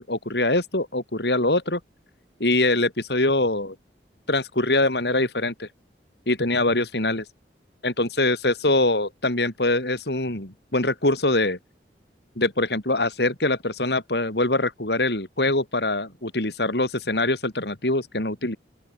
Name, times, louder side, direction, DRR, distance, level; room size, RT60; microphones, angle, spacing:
voice 1, 0.0-1.8 2.4-3.8 4.3-5.7 6.3-7.3 7.8-11.6 12.4-18.6, left 2 dB, 65° left, 3.9 m, -23 dB
open air
head